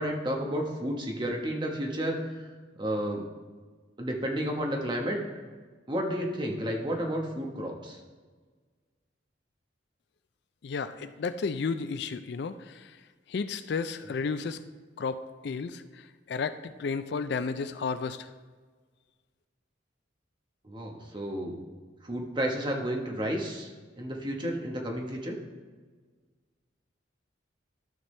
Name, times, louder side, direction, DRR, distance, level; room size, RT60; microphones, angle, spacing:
voice 1, 0.0-2.5 2.8-3.2 4.0-5.2 5.9-8.0 20.6-21.6 22.0-23.7 24.0-25.4, equal, 25° right, 0 dB, 1.1 m, -31 dB
voice 2, 10.6-12.9 13.3-14.6 15.0-18.3, left 5 dB, 60° left, 12 dB, 0.4 m, -33 dB
13.0 x 6.0 x 3.2 m, 1.4 s
head